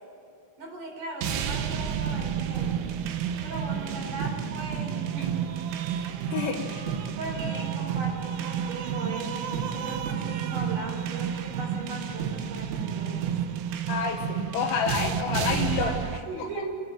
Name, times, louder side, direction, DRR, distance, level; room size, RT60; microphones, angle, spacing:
voice 1, 0.6-3.0 3.4-5.5 7.2-13.4 15.7-16.8, right 2 dB, 45° right, 0 dB, 5.8 m, -38 dB
sound 1, 1.2-16.2, right 8 dB, 85° right, 3.6 m, -30 dB
voice 2, 6.3-7.0 13.9-15.9 16.6-16.7, left 6 dB, 80° left, -2 dB, 3.6 m, -29 dB
28.0 x 11.0 x 9.2 m, 2.5 s
omnidirectional pair, 5.5 m